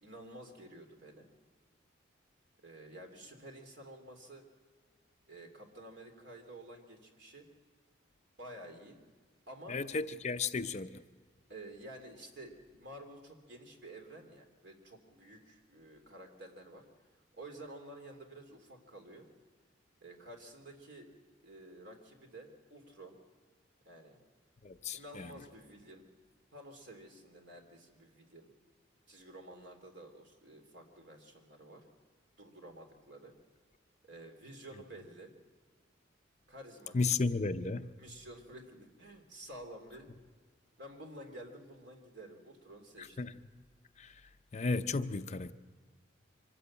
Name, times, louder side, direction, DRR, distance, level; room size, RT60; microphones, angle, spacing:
voice 1, 0.0-1.3 2.6-4.4 5.3-7.5 8.4-9.0 9.5-9.8 11.5-16.8 17.3-19.3 20.0-21.1 21.4-23.2 23.8-24.2 24.9-26.1 26.5-28.5 29.1-31.8 32.4-33.3 34.0-35.3 36.5-36.9 38.0-40.1 40.8-43.2, right 1 dB, 60° right, 3.2 m, -51 dB
voice 2, 9.7-11.0 24.6-25.3 36.9-37.9 43.0-43.3 44.0-44.1 44.5-45.5, left 4 dB, 35° left, 0.6 m, -34 dB
24.5 x 13.5 x 8.9 m
head